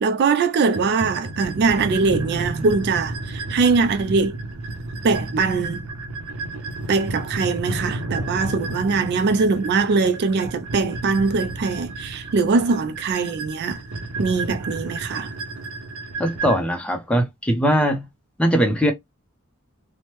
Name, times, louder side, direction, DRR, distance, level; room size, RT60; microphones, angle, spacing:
voice 1, 0.0-4.4 5.0-5.8 6.9-13.8 14.2-15.3, right 4 dB, 50° right, 0.3 m, -22 dB
sound 1, 0.7-16.6, right 2 dB, 75° right, 0.7 m, -32 dB
voice 2, 16.2-18.0 18.4-18.9, equal, 5° left, 0.6 m, -20 dB
3.0 x 2.1 x 3.0 m
head